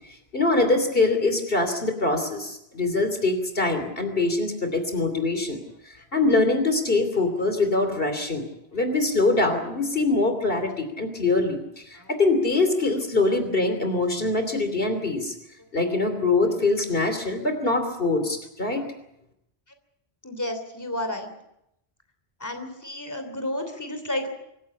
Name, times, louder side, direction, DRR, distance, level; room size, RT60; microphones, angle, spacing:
voice 1, 0.3-5.6 5.8-8.4 8.7-15.3 15.7-18.8, left 2 dB, 60° left, 7 dB, 3.3 m, -23 dB
voice 2, 20.2-21.3 22.4-24.3, left 1 dB, 15° left, 7 dB, 3.1 m, -32 dB
25.0 x 15.5 x 8.5 m, 0.80 s
omnidirectional pair, 1.1 m